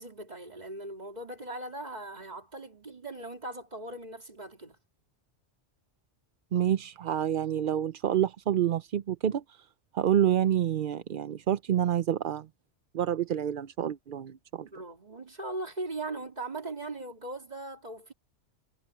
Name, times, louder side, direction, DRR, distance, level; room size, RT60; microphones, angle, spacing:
voice 1, 0.0-4.8 14.6-18.1, right 2 dB, 35° right, 2.6 m, -39 dB
voice 2, 6.5-9.7 9.9-12.5 12.9-14.7, right 10 dB, 55° right, 0.7 m, -28 dB
omnidirectional pair, 1.2 m